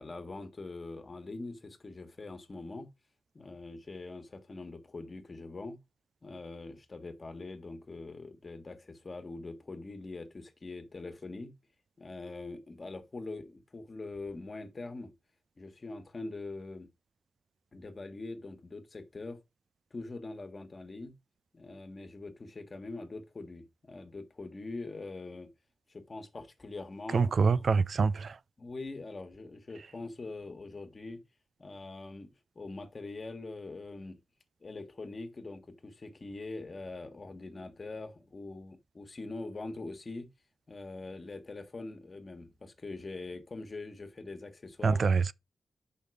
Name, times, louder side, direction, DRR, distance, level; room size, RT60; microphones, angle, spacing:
voice 1, 0.0-2.9 3.3-5.8 6.2-11.5 12.0-15.1 15.6-16.9 17.7-19.4 19.9-21.1 21.5-25.5 25.9-27.6 28.6-31.2 31.6-34.2 34.6-40.3 40.7-45.0, left 3 dB, 40° left, 1.5 m, -43 dB
voice 2, 27.1-28.4 44.8-45.3, right 5 dB, 65° right, 0.3 m, -25 dB
6.4 x 5.3 x 4.9 m
cardioid pair, 80°, 0 cm